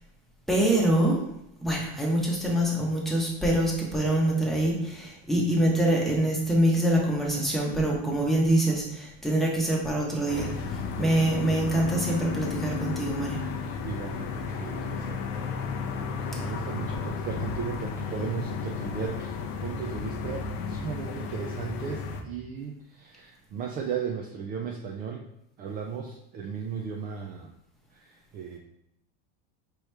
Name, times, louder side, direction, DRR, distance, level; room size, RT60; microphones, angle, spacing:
voice 1, 0.5-1.2 1.6-13.4 16.3-16.5, right 1 dB, ahead, -3 dB, 1.0 m, -25 dB
sound 1, 10.3-22.2, left 5 dB, 45° left, 0.6 m, -33 dB
voice 2, 11.0-11.6 13.3-15.2 16.0-25.3 25.6-27.5 27.9-28.6, right 6 dB, 30° right, 1 dB, 0.4 m, -36 dB
4.8 x 3.0 x 3.3 m, 0.77 s
supercardioid pair, 135°, 29 cm